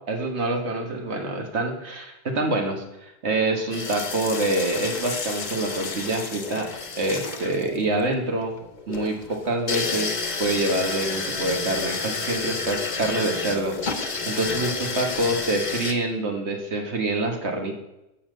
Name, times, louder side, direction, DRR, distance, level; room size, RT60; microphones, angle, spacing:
voice 1, 0.1-6.7 7.0-8.6 8.9-17.7, right 2 dB, 85° right, 2 dB, 1.7 m, -26 dB
sound 1, 3.7-15.9, left 4 dB, 45° left, 0.9 m, -31 dB
7.3 x 5.7 x 7.5 m, 0.91 s
omnidirectional pair, 1.1 m